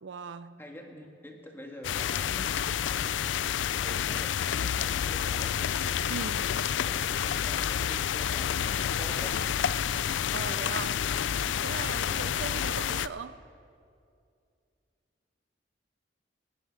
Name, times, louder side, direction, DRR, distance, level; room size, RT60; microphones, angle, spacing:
voice 1, 0.0-0.6 6.1-6.5 10.3-11.0 11.6-13.4, right 5 dB, 80° right, 13 dB, 0.5 m, -39 dB
voice 2, 0.6-3.3 3.8-5.8 6.8-9.7 12.1-12.5, equal, 10° left, 1 dB, 1.8 m, -46 dB
sound 1, 1.8-13.1, left 9 dB, 85° left, 0.4 m, -29 dB
27.0 x 10.0 x 5.3 m, 2.5 s
head